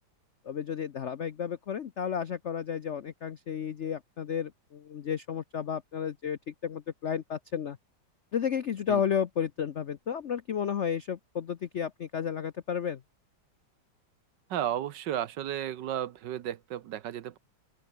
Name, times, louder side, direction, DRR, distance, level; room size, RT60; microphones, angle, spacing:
voice 1, 0.4-7.8 8.3-13.0, left 8 dB, 70° left, 0.6 m, -32 dB
voice 2, 14.5-17.4, right 11 dB, 65° right, 1.4 m, -33 dB
omnidirectional pair, 2.2 m